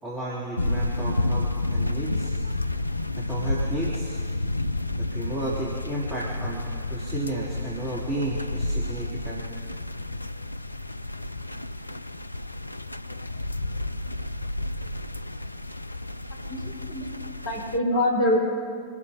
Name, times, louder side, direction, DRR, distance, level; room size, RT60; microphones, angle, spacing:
voice 1, 0.0-2.4 3.1-4.2 4.9-9.4, right 1 dB, 15° right, -9 dB, 3.2 m, -33 dB
sound 1, 0.6-17.8, left 2 dB, 85° left, 0.4 m, -30 dB
voice 2, 16.5-17.1 17.4-18.4, left 1 dB, 60° left, -1 dB, 5.0 m, -24 dB
25.5 x 14.5 x 2.9 m, 2.1 s
figure-of-eight pair, 90°, 0 cm